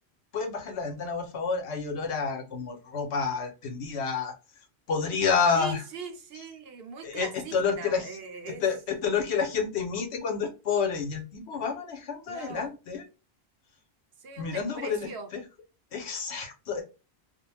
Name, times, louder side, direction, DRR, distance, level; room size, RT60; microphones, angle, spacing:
voice 1, 0.3-4.3 4.9-5.8 7.0-8.2 8.5-13.1 14.4-15.4 15.9-16.8, left 5 dB, 85° left, 1.0 m, -29 dB
voice 2, 5.5-8.6 12.3-12.7 14.2-15.3, right 5 dB, 70° right, 0.9 m, -41 dB
2.4 x 2.1 x 3.2 m
omnidirectional pair, 1.1 m